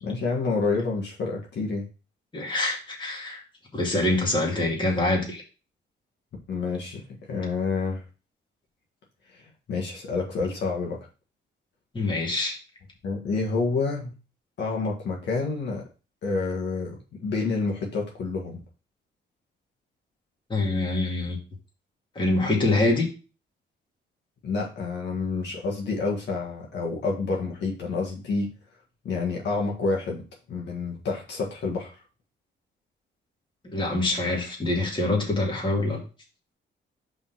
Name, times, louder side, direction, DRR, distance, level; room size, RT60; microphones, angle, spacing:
voice 1, 0.0-1.9 6.5-7.0 7.3-8.0 9.3-11.0 13.0-14.1 14.6-15.8 16.2-18.6 24.4-28.5 29.0-30.2 30.5-31.9, left 4 dB, 65° left, -1 dB, 1.6 m, -28 dB
voice 2, 2.3-3.4 3.7-5.4 11.9-12.5 20.5-21.4 22.2-23.1 33.7-36.0, left 2 dB, 25° left, -1 dB, 2.2 m, -25 dB
5.1 x 3.9 x 5.7 m, 0.33 s
cardioid pair, 120°, 20 cm